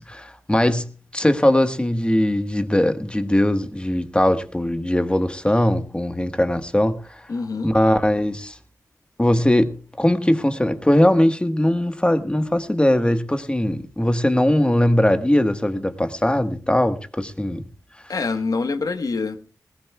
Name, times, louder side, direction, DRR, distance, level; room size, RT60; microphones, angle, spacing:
voice 1, 0.0-7.2 7.6-8.6 9.2-17.7, left 1 dB, 15° left, 1.4 m, -20 dB
voice 2, 7.3-7.7 18.1-19.4, left 4 dB, 70° left, 1.3 m, -25 dB
20.0 x 17.5 x 2.3 m
cardioid pair, 50°, 7 cm